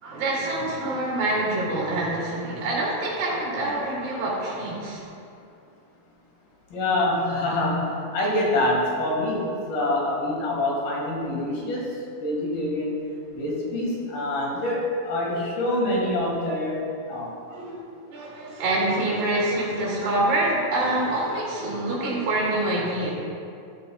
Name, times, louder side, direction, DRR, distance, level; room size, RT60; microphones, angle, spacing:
voice 1, 0.0-5.0 17.5-17.8 18.1-23.1, right 2 dB, 65° right, -5 dB, 3.9 m, -26 dB
voice 2, 6.7-11.9 12.2-12.9 13.3-16.8 17.1-17.3 17.5-17.7, left 1 dB, 65° left, -3 dB, 3.5 m, -25 dB
14.0 x 9.8 x 2.3 m, 2.5 s
omnidirectional pair, 4.8 m